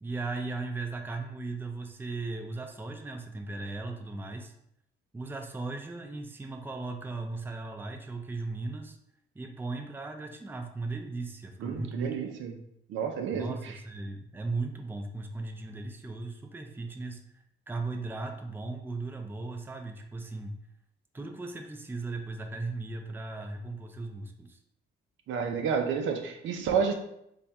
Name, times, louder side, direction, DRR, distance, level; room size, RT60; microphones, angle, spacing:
voice 1, 0.0-4.5 5.1-9.0 9.3-12.2 13.3-17.2 17.7-20.6 21.1-24.6, right 3 dB, 10° right, 4 dB, 0.4 m, -37 dB
voice 2, 11.6-12.5 12.9-13.7 25.3-26.9, right 6 dB, 75° right, 4 dB, 0.6 m, -30 dB
3.3 x 2.3 x 4.1 m, 0.77 s
cardioid pair, 90°, 20 cm